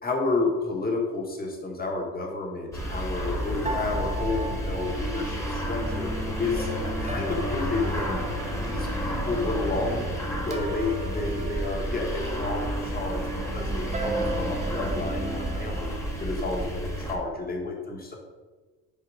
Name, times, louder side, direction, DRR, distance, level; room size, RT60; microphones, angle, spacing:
voice 1, 0.0-6.1 6.4-6.7 7.0-8.2 8.6-10.0 10.4-13.2 13.5-15.9 16.2-18.1, left 3 dB, 25° left, 0 dB, 1.5 m, -31 dB
sound 1, 2.7-17.1, equal, 10° left, 1.4 m, -31 dB
sound 2, 3.6-15.9, right 2 dB, 20° right, 0.8 m, -37 dB
5.7 x 4.8 x 4.9 m, 1.3 s
cardioid pair, 120°, 33 cm